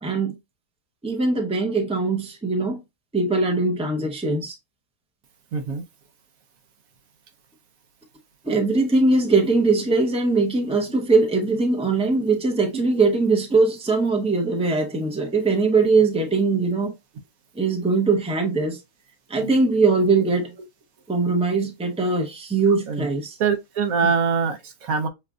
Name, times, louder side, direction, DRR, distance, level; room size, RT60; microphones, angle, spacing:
voice 1, 0.0-0.3 1.0-2.8 3.1-4.5 8.4-16.9 17.6-18.8 19.3-20.5 21.1-23.4 24.0-24.1, right 3 dB, 5° right, 0.6 m, -21 dB
voice 2, 5.5-5.8 19.4-19.5 22.9-23.1 23.4-25.1, right 6 dB, 75° right, 1.2 m, -23 dB
6.4 x 2.5 x 2.3 m
omnidirectional pair, 1.5 m